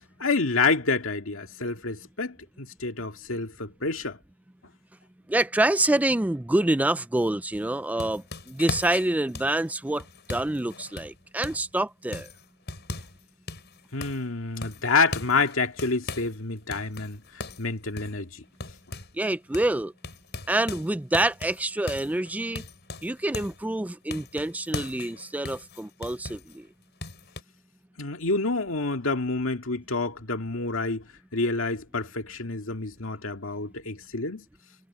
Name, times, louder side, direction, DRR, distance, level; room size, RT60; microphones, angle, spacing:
voice 1, 0.2-4.2 13.9-17.2 17.6-18.4 28.0-31.1 31.3-34.4, left 3 dB, 75° left, 2.2 m, -28 dB
voice 2, 5.3-10.0 10.3-12.3 19.2-19.9 20.5-22.6 23.0-26.6, right 1 dB, 5° right, 0.4 m, -26 dB
sound 1, 7.5-11.7 12.1-13.2 13.5-14.3 14.6-16.4 16.7-19.3 19.5-19.7 20.0-23.6 24.1-26.6 27.0-27.4, left 3 dB, 55° left, 6.7 m, -39 dB
head